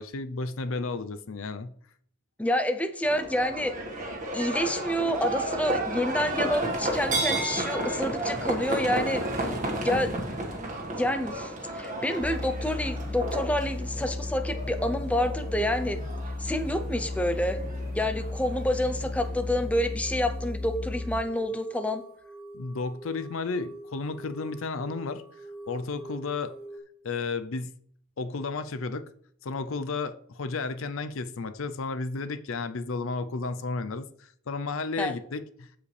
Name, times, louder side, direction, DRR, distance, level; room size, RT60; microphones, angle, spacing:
voice 1, 0.0-1.7 22.5-25.2 25.7-26.5 27.0-27.7 28.2-29.1 29.4-35.7, left 3 dB, 60° left, 0.5 m, -33 dB
voice 2, 2.4-3.7 4.3-9.5 9.8-10.2 10.9-16.0 16.4-17.6 17.9-22.0 35.0-35.1, left 1 dB, 5° left, 0.5 m, -28 dB
Livestock farm animals working animals, 3.0-19.5, right 1 dB, 35° right, 1.7 m, -33 dB
sound 1, 12.2-21.3, left 2 dB, 40° left, 1.0 m, -34 dB
sound 2, 18.4-26.8, right 1 dB, 70° right, 1.9 m, -46 dB
15.0 x 5.1 x 3.3 m
head